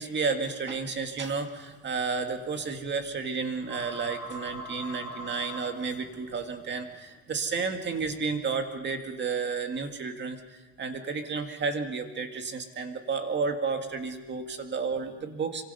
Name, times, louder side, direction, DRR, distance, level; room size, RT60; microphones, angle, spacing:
voice 1, 0.0-10.4 10.8-15.6, right 4 dB, 30° right, 5 dB, 1.9 m, -32 dB
sound 1, 1.2-7.2, right 1 dB, 5° right, 4.6 m, -43 dB
26.5 x 24.5 x 5.5 m, 1.4 s
cardioid pair, 170°, 38 cm